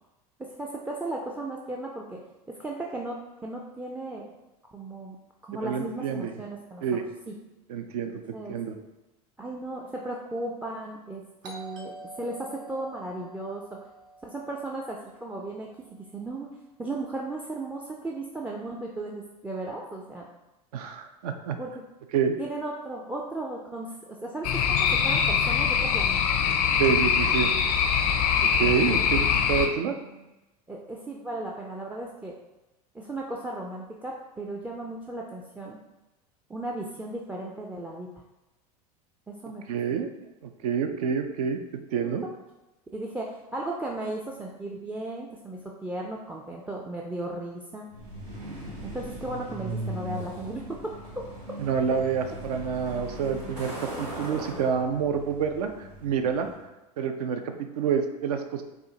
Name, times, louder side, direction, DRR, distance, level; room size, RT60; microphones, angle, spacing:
voice 1, 0.4-2.2 2.5-4.3 4.7-5.2 5.4-6.8 7.3-7.4 8.3-8.6 9.4-13.8 14.2-20.3 21.6-21.8 22.4-26.2 29.9-30.2 30.7-32.3 32.9-35.8 36.5-38.1 39.3-39.6 41.9-42.3 42.9-47.9 48.8-50.9, right 2 dB, 10° right, -2 dB, 0.3 m, -36 dB
voice 2, 5.6-6.3 6.8-7.0 7.7-8.8 20.7-21.6 22.1-22.4 26.8-27.5 28.4-30.0 39.7-40.1 40.4-42.2 51.6-56.5 57.0-58.6, right 7 dB, 70° right, 7 dB, 0.5 m, -28 dB
Doorbell, 11.4-16.0, right 2 dB, 55° right, 0.9 m, -47 dB
sound 1, 24.4-29.7, left 7 dB, 70° left, 0.5 m, -23 dB
Truck, 47.9-56.6, right 1 dB, 90° right, 1.0 m, -39 dB
4.3 x 2.4 x 2.8 m, 1.0 s
hypercardioid pair, 80°, 20 cm